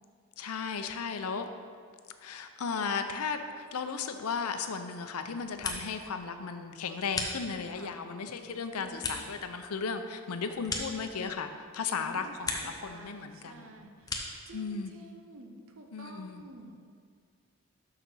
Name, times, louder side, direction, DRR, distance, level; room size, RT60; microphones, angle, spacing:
voice 1, 0.4-1.5 2.2-13.7 14.5-14.9 15.9-16.4, left 5 dB, 85° left, 8 dB, 0.6 m, -35 dB
sound 1, 5.3-6.1 6.4-7.9 8.3-11.6 11.9-12.9 13.2-14.5, left 3 dB, 15° left, 0.7 m, -39 dB
voice 2, 7.7-8.1 8.8-9.2 11.9-14.1 14.4-16.8, right 2 dB, 65° right, 4 dB, 0.8 m, -50 dB
6.6 x 5.9 x 6.2 m, 2.1 s
head